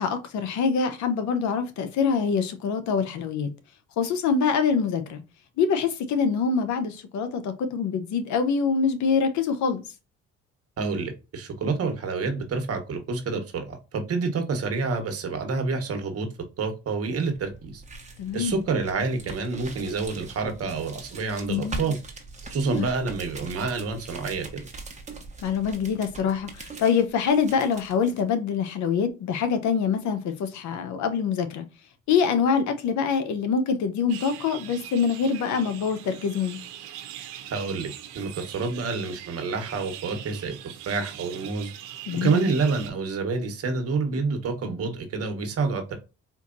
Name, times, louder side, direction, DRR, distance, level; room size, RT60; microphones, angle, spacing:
voice 1, 0.0-3.5 4.0-5.2 5.6-9.8 18.2-18.6 21.5-22.0 22.8-22.9 25.4-31.6 32.1-36.6 42.1-42.5, left 6 dB, 70° left, 0.9 m, -25 dB
voice 2, 10.8-16.3 16.6-17.8 18.3-22.0 22.5-24.6 37.5-37.9 38.1-40.6 40.9-41.7 42.2-45.9, right 4 dB, 50° right, 1.2 m, -28 dB
sound 1, 17.3-28.2, right 3 dB, 25° right, 1.1 m, -42 dB
sound 2, 34.1-42.9, right 11 dB, 90° right, 0.7 m, -42 dB
4.5 x 2.6 x 2.5 m
cardioid pair, 85°, 30 cm